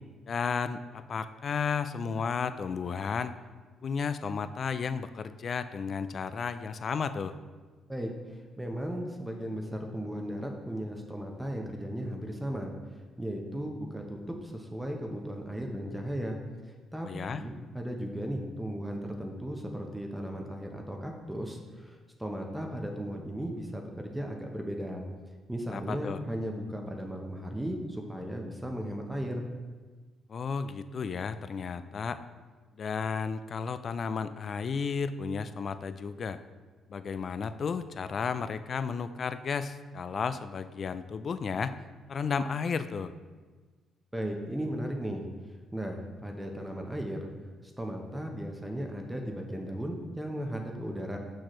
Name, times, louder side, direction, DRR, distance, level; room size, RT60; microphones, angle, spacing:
voice 1, 0.3-3.3 3.8-7.4 17.0-17.4 25.7-26.2 30.3-32.2 32.8-36.4 36.9-41.8 42.1-43.1, left 5 dB, 50° left, 12 dB, 0.3 m, -33 dB
voice 2, 7.9-16.4 16.6-25.0 25.5-29.5 44.1-47.3 47.6-51.2, equal, 10° right, 2 dB, 0.7 m, -36 dB
6.4 x 6.1 x 3.1 m, 1.4 s
cardioid pair, 90°, 0 cm